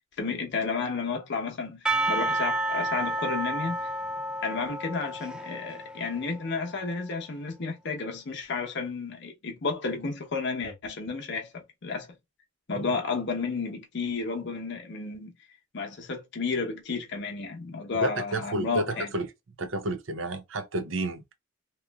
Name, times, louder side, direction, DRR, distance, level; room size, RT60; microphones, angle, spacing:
voice 1, 0.2-3.8 4.4-12.1 12.7-15.3 15.7-19.1, left 4 dB, 60° left, 0.8 m, -32 dB
Percussion / Church bell, 1.9-6.9, right 1 dB, 5° right, 0.3 m, -31 dB
voice 2, 18.0-19.3 19.6-21.3, right 2 dB, 70° right, 0.6 m, -31 dB
3.0 x 2.5 x 2.2 m
head